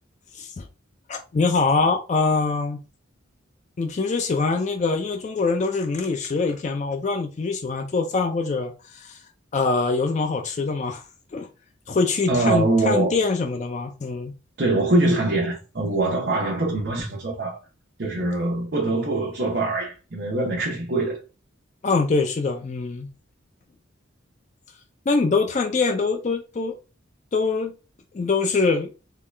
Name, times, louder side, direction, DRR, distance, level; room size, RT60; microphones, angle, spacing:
voice 1, 0.3-0.7 1.1-2.8 3.8-9.2 9.5-11.0 11.3-11.5 11.9-14.3 21.8-23.1 25.1-26.7 27.3-27.7 28.1-28.9, left 4 dB, 35° left, 0.4 m, -24 dB
voice 2, 12.3-13.1 14.6-17.6 18.0-21.2, right 2 dB, 55° right, 0.8 m, -23 dB
3.7 x 2.3 x 3.2 m
head